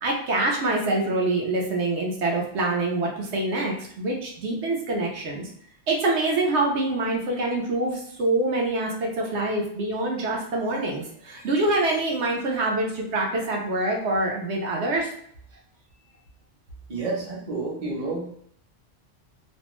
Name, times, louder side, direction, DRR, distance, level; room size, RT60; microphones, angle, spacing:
voice 1, 0.0-5.5 5.9-15.1, right 2 dB, 80° right, -1 dB, 1.0 m, -25 dB
voice 2, 16.9-18.3, right 3 dB, 40° right, -3 dB, 0.7 m, -30 dB
2.6 x 2.1 x 2.9 m, 0.66 s
omnidirectional pair, 1.2 m